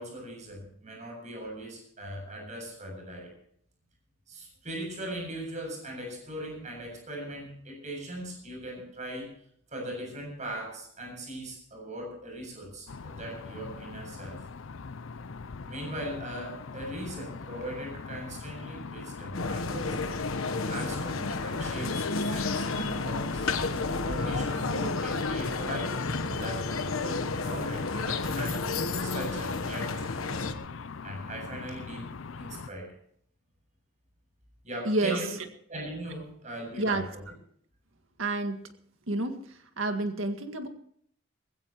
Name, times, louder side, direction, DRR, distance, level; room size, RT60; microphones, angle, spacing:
voice 1, 0.0-3.3 4.3-9.3 9.7-14.4 15.6-20.2 20.7-23.5 24.0-28.6 29.0-30.2 31.0-32.1 32.4-32.9 34.6-35.3 35.7-37.2, right 1 dB, 35° right, 2 dB, 7.7 m, -39 dB
sound 1, 12.9-32.7, left 4 dB, 75° left, 0.6 m, -41 dB
sound 2, 19.3-30.5, left 3 dB, 90° left, 1.2 m, -31 dB
voice 2, 34.9-35.2 36.8-37.0 38.2-38.7 39.1-39.5 39.8-40.7, right 2 dB, 75° right, 7 dB, 2.0 m, -29 dB
20.5 x 16.5 x 3.1 m, 0.63 s
head